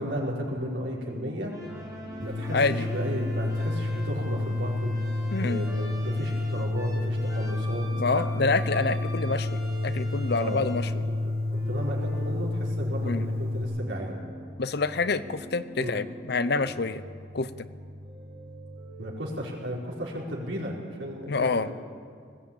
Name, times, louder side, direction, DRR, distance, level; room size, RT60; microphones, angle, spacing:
voice 1, 0.0-1.5 2.2-4.9 5.4-8.2 10.3-10.7 11.5-14.2 15.8-16.0 19.0-21.7, equal, 80° right, -2 dB, 4.5 m, -34 dB
sound 1, 1.5-19.2, right 1 dB, 20° right, 4.2 m, -42 dB
sound 2, 2.2-13.6, left 2 dB, 45° right, 5.3 m, -30 dB
voice 2, 2.5-2.9 5.3-5.6 8.0-11.0 13.0-13.2 14.6-17.0 17.3-17.5 21.3-21.7, left 3 dB, 55° left, 14 dB, 0.7 m, -27 dB
20.0 x 15.5 x 8.7 m, 2.1 s
head